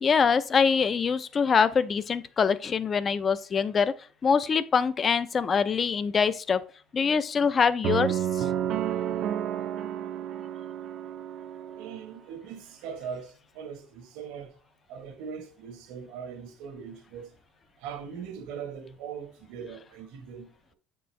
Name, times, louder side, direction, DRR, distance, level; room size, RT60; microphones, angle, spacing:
voice 1, 0.0-3.9 4.2-6.6 6.9-8.5, left 6 dB, 30° left, 0.4 m, -24 dB
sound 1, 7.8-12.0, right 10 dB, 50° right, 0.4 m, -31 dB
voice 2, 11.8-14.6 14.9-17.3 17.8-20.7, right 7 dB, 85° right, 1.3 m, -40 dB
8.2 x 4.4 x 3.1 m
cardioid pair, 145°, 0 cm